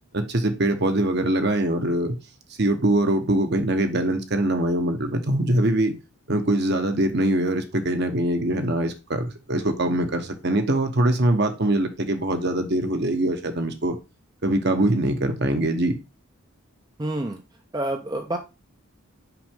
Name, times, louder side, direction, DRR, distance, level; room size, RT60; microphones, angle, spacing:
voice 1, 0.1-2.2 2.6-5.9 6.3-14.0 14.4-16.0, right 1 dB, 50° right, 1.0 m, -23 dB
voice 2, 17.0-17.4 17.7-18.4, right 1 dB, 20° right, 0.5 m, -27 dB
5.9 x 5.1 x 3.6 m
head